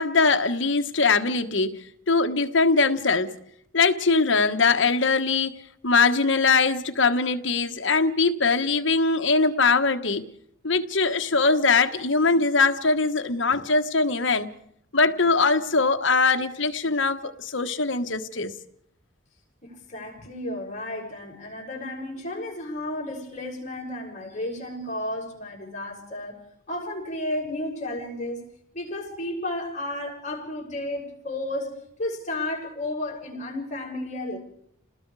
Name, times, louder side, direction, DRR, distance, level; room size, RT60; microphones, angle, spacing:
voice 1, 0.0-1.8 2.1-3.3 3.7-5.5 5.8-10.2 10.6-14.5 14.9-18.5, left 4 dB, 60° left, 7 dB, 1.4 m, -22 dB
voice 2, 19.6-26.4 26.7-28.4 28.7-31.7 32.0-34.4, left 1 dB, 35° left, -1 dB, 6.0 m, -32 dB
30.0 x 20.0 x 4.9 m, 0.70 s
head